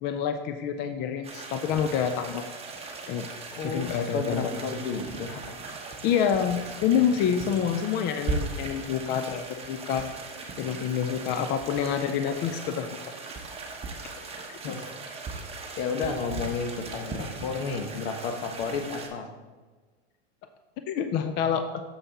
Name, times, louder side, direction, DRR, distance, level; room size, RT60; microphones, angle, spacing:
voice 1, 0.0-2.4 3.1-3.3 3.6-4.5 6.0-10.1 10.6-13.1 14.5-14.7 20.9-21.8, left 8 dB, 35° left, 8 dB, 0.4 m, -27 dB
sound 1, 1.2-19.1, right 3 dB, 20° right, 1.1 m, -38 dB
voice 2, 3.5-5.6 14.6-14.8 15.8-19.3, left 4 dB, 60° left, 5 dB, 1.2 m, -32 dB
6.9 x 5.6 x 4.1 m, 1.3 s
hypercardioid pair, 115°, 33 cm